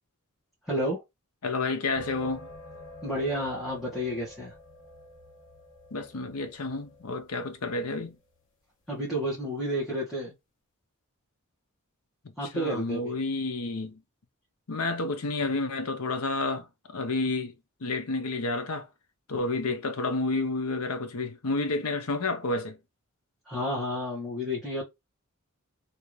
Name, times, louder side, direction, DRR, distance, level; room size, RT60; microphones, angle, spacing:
voice 1, 0.7-1.0 3.0-4.5 8.9-10.3 12.4-13.0 23.4-24.8, equal, ahead, 1.5 m, -30 dB
voice 2, 1.4-2.5 5.9-8.2 12.2-14.0 14.7-18.9 19.3-22.8, left 3 dB, 85° left, 0.8 m, -30 dB
sound 1, 2.0-8.5, left 1 dB, 60° left, 1.1 m, -48 dB
3.4 x 2.8 x 3.2 m
head